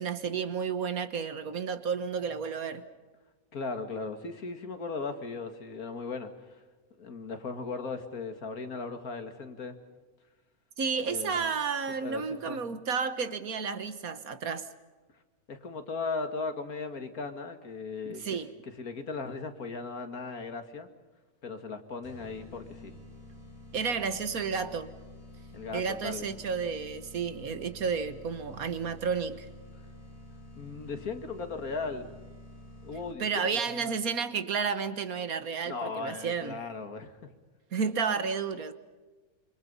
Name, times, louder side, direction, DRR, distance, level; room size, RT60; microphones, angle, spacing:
voice 1, 0.0-2.8 10.8-14.6 18.0-18.5 23.7-24.9 25.7-29.5 33.2-36.6 37.7-38.7, right 6 dB, 70° right, 1.8 m, -31 dB
voice 2, 3.5-6.3 7.0-9.8 11.1-11.5 12.0-12.6 15.5-18.2 18.6-20.9 21.4-22.9 25.5-26.2 30.6-32.1 32.8-33.2 33.5-33.9 35.6-37.3, left 4 dB, 75° left, 2.5 m, -37 dB
sound 1, 22.0-33.4, left 1 dB, 20° right, 5.9 m, -49 dB
27.0 x 25.5 x 5.5 m
omnidirectional pair, 1.6 m